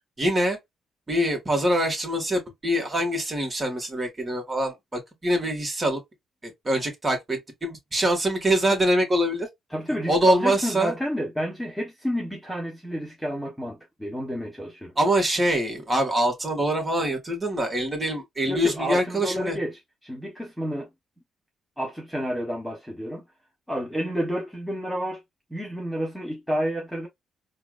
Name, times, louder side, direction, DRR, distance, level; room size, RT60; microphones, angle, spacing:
voice 1, 0.2-0.6 1.1-6.0 6.4-9.5 10.1-10.9 15.0-19.6, right 1 dB, 25° right, 1.9 m, -24 dB
voice 2, 9.7-14.9 18.4-20.9 21.8-23.2 23.7-25.2 25.5-27.1, equal, ahead, 1.2 m, -30 dB
4.4 x 2.6 x 2.5 m
cardioid pair, 90°, 0 cm